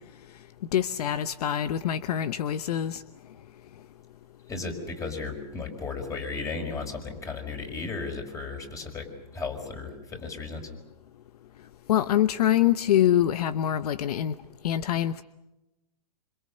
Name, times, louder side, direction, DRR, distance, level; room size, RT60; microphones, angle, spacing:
voice 1, 0.7-3.0 11.9-14.3 14.6-15.2, left 11 dB, 65° left, 14 dB, 0.9 m, -24 dB
voice 2, 4.5-10.7, left 4 dB, 15° left, 4 dB, 5.4 m, -35 dB
27.0 x 26.5 x 6.7 m, 0.95 s
hypercardioid pair, 135°, 21 cm